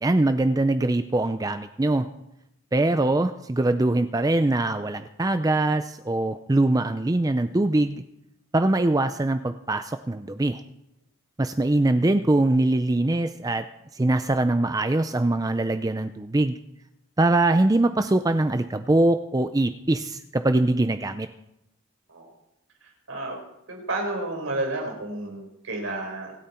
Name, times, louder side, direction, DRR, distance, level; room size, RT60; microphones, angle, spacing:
voice 1, 0.0-2.1 2.7-8.0 8.5-10.6 11.4-13.6 13.9-16.6 17.2-21.3, right 2 dB, 20° right, 9 dB, 0.5 m, -22 dB
voice 2, 22.8-23.4 23.7-26.3, right 2 dB, 85° right, 1 dB, 4.7 m, -31 dB
26.0 x 9.1 x 4.4 m, 0.83 s
head